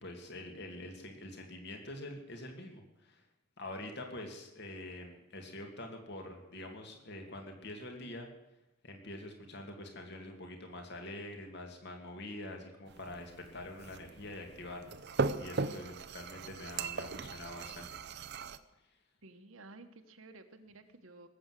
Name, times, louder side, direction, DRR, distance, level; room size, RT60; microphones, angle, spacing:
voice 1, 0.0-3.2 3.6-8.3 8.8-14.9 15.4-17.9, left 1 dB, 55° left, 3 dB, 2.5 m, -45 dB
sound 1, 12.9-18.6, right 4 dB, 50° right, 0.7 m, -38 dB
voice 2, 19.2-21.3, right 2 dB, 70° right, 7 dB, 1.4 m, -53 dB
19.0 x 8.0 x 7.6 m, 0.99 s
head